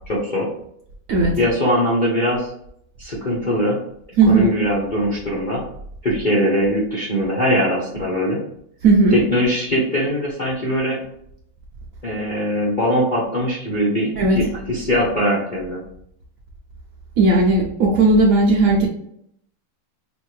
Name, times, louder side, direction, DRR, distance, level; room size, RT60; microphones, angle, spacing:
voice 1, 0.1-0.5 1.4-2.5 3.0-3.8 4.3-5.6 6.0-8.4 9.1-11.0 12.0-15.8, equal, 70° left, -6 dB, 0.4 m, -21 dB
voice 2, 4.2-4.5 8.8-9.1 14.2-14.4 17.2-18.9, right 3 dB, 90° right, -1 dB, 0.7 m, -15 dB
5.0 x 2.7 x 3.1 m, 0.71 s
omnidirectional pair, 2.3 m